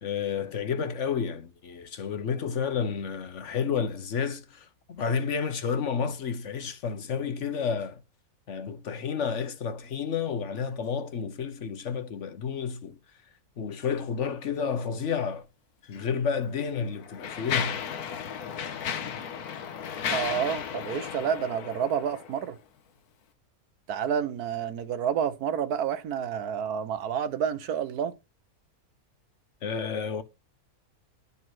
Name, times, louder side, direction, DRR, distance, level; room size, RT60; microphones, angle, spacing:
voice 1, 0.0-8.0 8.5-13.0 13.6-15.5 15.9-17.8 29.6-30.2, left 6 dB, 55° left, 1.2 m, -31 dB
Mechanisms, 15.8-16.0 16.7-22.5, left 7 dB, 90° left, 1.5 m, -34 dB
voice 2, 20.1-22.6 23.9-28.1, right 8 dB, 80° right, 1.4 m, -29 dB
11.0 x 5.5 x 6.1 m
omnidirectional pair, 1.6 m